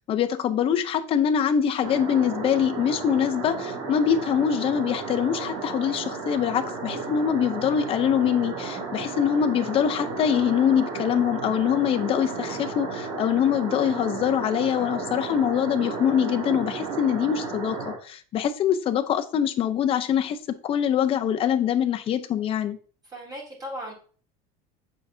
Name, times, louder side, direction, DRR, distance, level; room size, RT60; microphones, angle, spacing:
voice 1, 0.1-20.4 20.6-22.8, left 9 dB, 30° left, 8 dB, 0.6 m, -24 dB
sound 1, 1.8-17.9, right 4 dB, 75° right, 2.4 m, -33 dB
voice 2, 23.1-23.9, equal, 25° right, -4 dB, 2.9 m, -36 dB
7.6 x 4.9 x 2.7 m, 0.42 s
cardioid pair, 150°, 18 cm